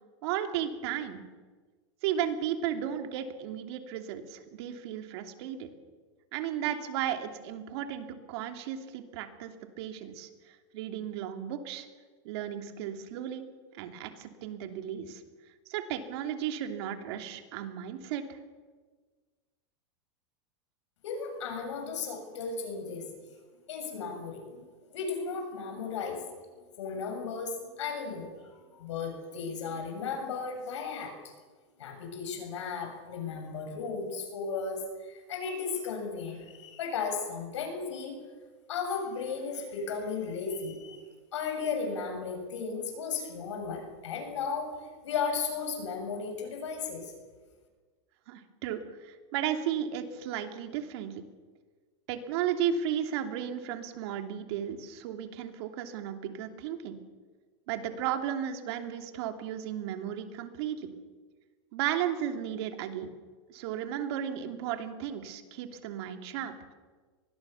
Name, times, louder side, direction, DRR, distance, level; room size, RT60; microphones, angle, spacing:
voice 1, 0.2-1.2 2.0-5.7 6.3-11.9 12.2-13.5 13.7-15.2 15.7-18.4 48.3-51.1 52.1-56.9 57.7-60.9 61.7-63.1 63.5-66.5, right 9 dB, 65° right, 6 dB, 2.9 m, -34 dB
voice 2, 21.0-23.1 23.7-24.6 24.9-26.3 26.8-31.3 31.8-38.2 38.7-47.1, left 5 dB, 90° left, 4 dB, 7.6 m, -35 dB
24.0 x 20.5 x 7.2 m, 1.4 s
supercardioid pair, 130°, 15 cm